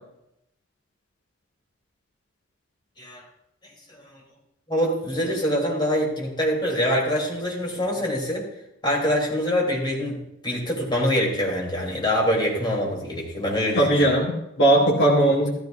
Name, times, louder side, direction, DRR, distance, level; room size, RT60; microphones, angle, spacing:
voice 1, 4.7-8.5 8.8-14.1, equal, 25° left, -2 dB, 3.3 m, -25 dB
voice 2, 13.7-15.5, right 1 dB, 60° left, -4 dB, 2.3 m, -19 dB
14.5 x 14.0 x 2.6 m, 0.84 s
head